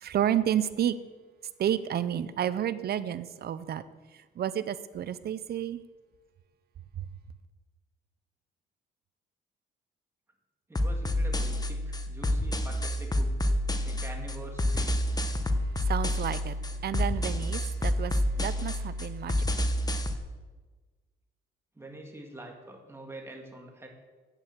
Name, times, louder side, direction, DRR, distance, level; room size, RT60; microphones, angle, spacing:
voice 1, 0.0-1.0 1.6-3.8 4.4-5.8 7.0-7.1 15.8-16.6 16.8-19.5, right 10 dB, 55° right, 15 dB, 0.6 m, -30 dB
sound 1, 10.7-20.2, left 1 dB, 20° left, 0.9 m, -29 dB
voice 2, 10.7-13.3 13.8-15.0 21.8-23.9, right 1 dB, 10° right, 1 dB, 1.9 m, -45 dB
8.6 x 7.5 x 6.5 m, 1.3 s
cardioid pair, 90°, 20 cm